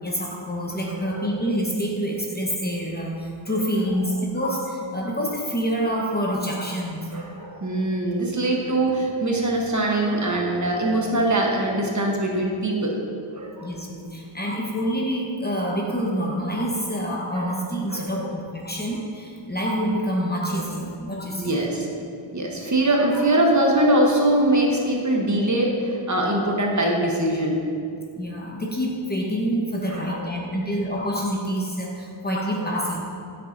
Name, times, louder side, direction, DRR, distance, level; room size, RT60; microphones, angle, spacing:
voice 1, 0.0-7.1 10.2-10.3 13.6-21.6 28.2-33.0, equal, 20° left, -2 dB, 1.0 m, -27 dB
voice 2, 0.9-1.6 7.1-12.9 13.3-13.7 17.3-17.4 17.9-18.2 20.5-20.6 21.4-21.9 22.3-27.6 29.9-30.6, right 1 dB, 35° right, -1 dB, 1.0 m, -23 dB
9.2 x 6.7 x 2.6 m, 2.3 s
wide cardioid pair, 80°, 48 cm